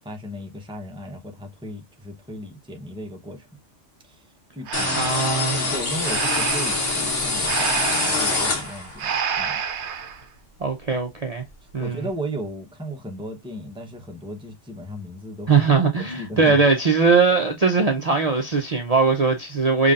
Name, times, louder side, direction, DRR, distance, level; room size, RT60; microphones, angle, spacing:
voice 1, 0.0-3.5 4.0-4.2 4.5-5.1 5.5-9.6 11.8-15.6 16.0-16.6, equal, 5° right, 0.9 m, -36 dB
sound 1, 4.7-9.1, left 3 dB, 80° left, 1.9 m, -25 dB
Breathing, 4.7-10.2, right 7 dB, 70° right, 1.0 m, -29 dB
voice 2, 4.9-5.6 10.6-11.4 11.7-12.0 15.5-19.9, right 4 dB, 35° right, 0.7 m, -20 dB
5.5 x 3.3 x 2.5 m
omnidirectional pair, 1.2 m